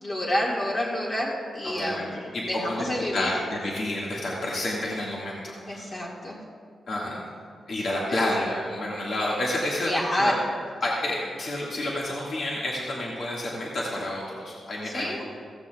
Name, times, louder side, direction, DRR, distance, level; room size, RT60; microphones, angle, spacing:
voice 1, 0.0-3.4 5.7-6.4 8.1-8.3 9.9-10.4 14.8-15.2, left 1 dB, 40° left, -5 dB, 2.0 m, -29 dB
voice 2, 2.3-5.9 6.9-7.2 7.7-10.4 10.8-15.2, left 1 dB, 65° left, -5 dB, 1.9 m, -29 dB
15.5 x 14.5 x 2.4 m, 2.1 s
cardioid pair, 105°, 0 cm